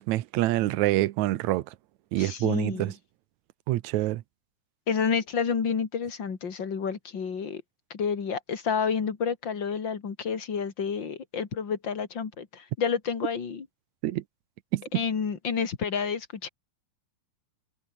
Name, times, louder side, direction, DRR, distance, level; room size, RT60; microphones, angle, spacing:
voice 1, 0.0-1.7 2.1-2.9 3.7-4.2 14.0-14.2 14.7-14.8, right 16 dB, 70° right, 1.8 m, -26 dB
voice 2, 2.2-2.9 4.9-7.6 7.9-13.7 14.9-16.5, left 6 dB, 35° left, 2.8 m, -29 dB
omnidirectional pair, 4.0 m